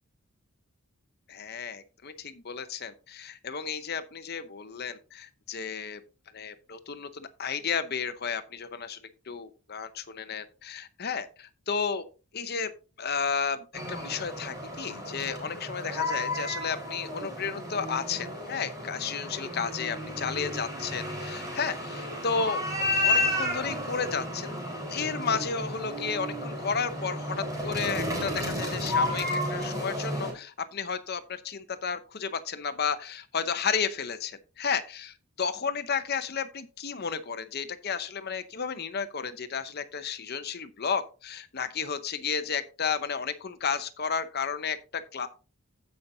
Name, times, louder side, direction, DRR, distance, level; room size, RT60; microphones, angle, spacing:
voice 1, 1.3-6.0 6.3-9.0 9.3-12.0 12.3-12.7 13.0-24.5 24.9-45.3, left 6 dB, 45° left, 0.7 m, -32 dB
sound 1, 13.7-30.3, left 1 dB, 15° right, 4.2 m, -32 dB
16.0 x 5.5 x 2.7 m
head